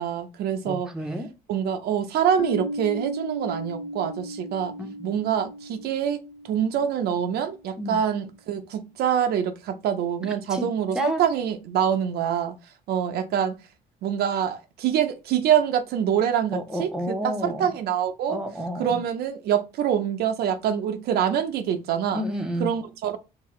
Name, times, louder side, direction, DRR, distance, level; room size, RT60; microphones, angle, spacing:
voice 1, 0.0-0.9 1.5-4.7 5.0-6.2 6.5-12.5 12.9-13.6 14.0-17.1 17.4-18.4 18.8-22.2 22.6-23.2, right 9 dB, 70° right, 0.6 m, -25 dB
voice 2, 0.7-1.3 4.8-4.9 7.8-8.0 10.5-10.7 10.9-11.2 16.5-17.7 18.3-19.0 22.1-22.7, equal, 5° right, 0.8 m, -30 dB
Piano, 2.4-7.8, right 1 dB, 70° left, 0.9 m, -36 dB
4.7 x 2.9 x 3.1 m
cardioid pair, 110°, 17 cm